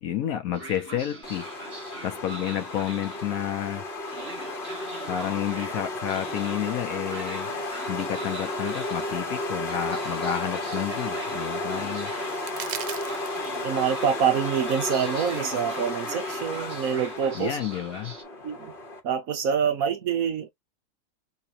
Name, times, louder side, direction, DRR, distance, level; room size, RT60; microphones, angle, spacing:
voice 1, 0.0-1.5 2.0-3.8 5.1-7.5 7.9-12.1 17.3-18.1, left 11 dB, 65° left, 1.0 m, -30 dB
Train, 0.5-18.2, right 3 dB, 40° right, 1.2 m, -43 dB
sound 1, 1.2-19.0, left 2 dB, 35° left, 1.1 m, -33 dB
sound 2, 9.0-10.0 10.2-10.3 10.7-10.8 11.9-12.0 12.2-13.6 14.7-15.6, right 11 dB, 85° right, 1.2 m, -40 dB
voice 2, 13.6-17.6 18.4-18.7 19.0-20.5, right 7 dB, 60° right, 1.2 m, -26 dB
4.1 x 2.7 x 2.7 m
omnidirectional pair, 1.8 m